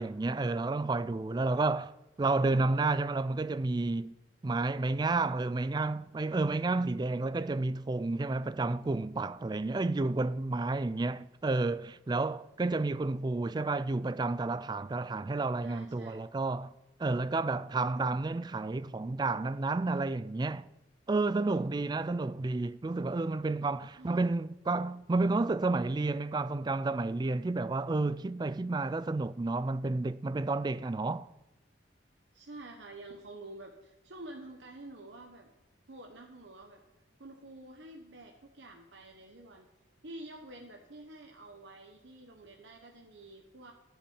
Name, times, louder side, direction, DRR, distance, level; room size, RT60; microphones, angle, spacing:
voice 1, 0.0-4.1 4.4-16.7 17.0-20.7 21.1-31.3, right 3 dB, 25° right, 0.3 m, -31 dB
voice 2, 15.6-16.2 24.0-24.2 32.3-35.5 35.9-36.8 37.2-39.7 40.0-43.7, right 2 dB, 75° right, 1.2 m, -48 dB
13.0 x 7.1 x 8.7 m
head